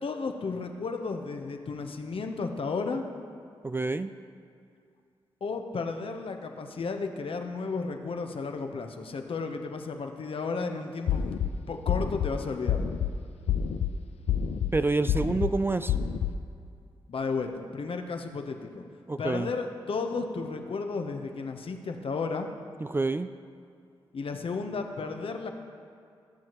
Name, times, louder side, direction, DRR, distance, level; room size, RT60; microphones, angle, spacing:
voice 1, 0.0-3.0 5.4-11.3 11.7-12.8 17.1-18.8 19.2-22.5 24.1-25.5, left 4 dB, 55° left, 5 dB, 0.8 m, -33 dB
voice 2, 3.6-4.1 14.7-15.9 19.1-19.5 22.8-23.3, right 3 dB, 20° right, 11 dB, 0.3 m, -27 dB
sound 1, 11.1-11.5 11.9-12.3 12.7-13.1 13.5-13.9 14.3-14.7 15.1-15.5 15.9-16.3, left 8 dB, 75° left, 0.4 m, -27 dB
14.0 x 7.2 x 3.0 m, 2.4 s
supercardioid pair, 40°, 11 cm